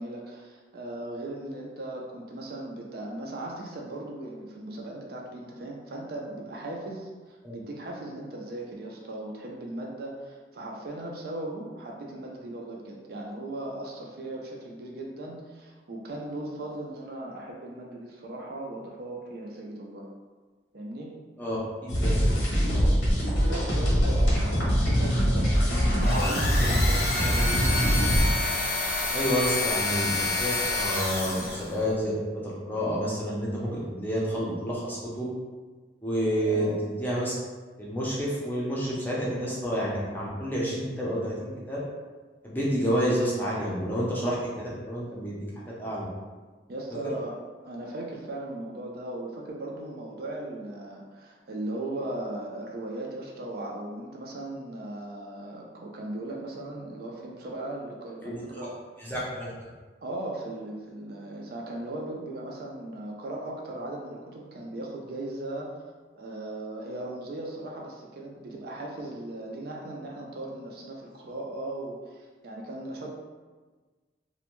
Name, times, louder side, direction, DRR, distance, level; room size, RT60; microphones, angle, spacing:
voice 1, 0.0-20.1 20.7-21.1 23.5-27.7 31.2-31.5 36.3-36.7 46.7-47.3 47.6-58.8 60.0-65.7 66.2-73.1, right 1 dB, 55° right, -1 dB, 0.4 m, -38 dB
voice 2, 21.4-22.2 22.7-22.9 29.1-35.3 36.0-37.3 37.8-41.8 42.4-45.4 45.8-46.0 58.2-58.4 59.1-59.5, equal, 10° left, -6 dB, 0.5 m, -29 dB
sound 1, 21.9-28.3, equal, 90° left, 0.9 m, -23 dB
sound 2, 26.0-31.8, left 2 dB, 55° left, 0.6 m, -28 dB
2.5 x 2.2 x 2.9 m, 1.4 s
head